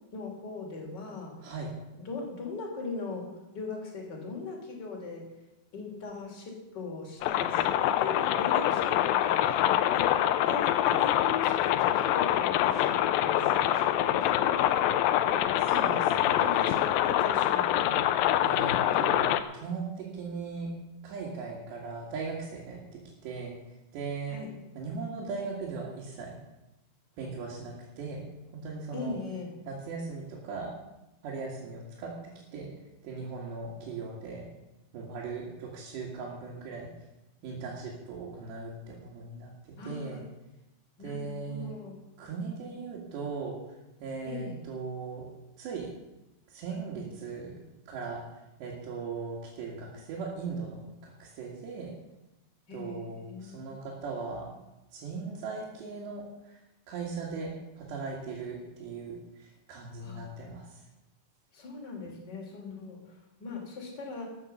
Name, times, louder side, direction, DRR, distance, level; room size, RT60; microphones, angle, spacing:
voice 1, 0.1-1.5 2.0-5.3 5.7-9.6 9.9-10.1 10.4-14.8 16.2-18.1 24.3-24.5 28.9-29.5 39.8-40.2 41.0-42.0 44.3-44.7 52.7-53.7 60.0-60.3 61.5-64.2, left 4 dB, 30° left, 0 dB, 2.8 m, -40 dB
sound 1, 7.2-19.4, left 12 dB, 90° left, 2.1 m, -25 dB
voice 2, 15.6-16.6 18.4-20.7 21.0-24.4 24.7-26.4 27.2-28.2 28.5-29.1 29.7-30.7 31.2-32.7 33.0-34.5 34.9-36.9 37.4-40.2 41.0-41.7 42.2-43.6 44.0-45.3 45.6-45.9 46.5-51.9 52.7-54.5 54.9-60.9, right 4 dB, 85° right, -4 dB, 4.2 m, -38 dB
13.5 x 8.0 x 7.5 m, 0.98 s
omnidirectional pair, 4.9 m